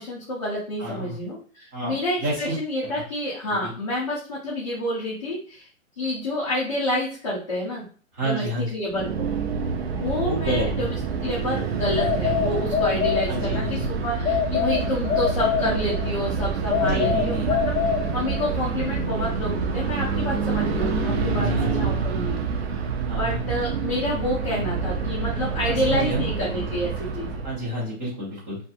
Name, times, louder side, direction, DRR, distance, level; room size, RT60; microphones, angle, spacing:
voice 1, 0.0-5.7 6.0-7.8 8.2-9.3 9.9-11.0 11.2-17.7 18.1-22.5 23.1-27.4, left 1 dB, 25° left, -8 dB, 0.5 m, -28 dB
voice 2, 0.8-1.2 1.7-2.5 3.6-3.7 8.1-8.7 10.2-10.9 13.3-13.9 16.8-17.6 21.4-21.9 23.1-23.4 25.6-26.2 27.4-28.6, right 1 dB, 15° right, -7 dB, 0.8 m, -29 dB
sound 1, 8.9-27.6, right 5 dB, 50° right, 0.5 m, -27 dB
sound 2, 12.0-13.7 14.3-16.2 16.7-18.6, left 8 dB, 90° left, 0.5 m, -25 dB
2.6 x 2.4 x 2.5 m, 0.40 s
hypercardioid pair, 165°, 40 cm